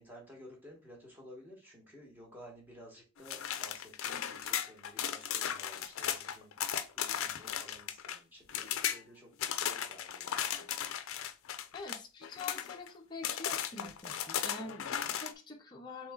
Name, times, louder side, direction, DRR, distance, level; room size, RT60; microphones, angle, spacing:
voice 1, 0.0-6.5 6.9-10.9, equal, 10° right, 1.2 m, -54 dB
sound 1, 3.3-8.2 8.5-9.0 9.4-12.9 13.2-15.3, left 9 dB, 70° left, 0.4 m, -36 dB
voice 2, 11.7-16.1, left 3 dB, 20° left, 0.6 m, -45 dB
3.7 x 3.1 x 3.6 m
head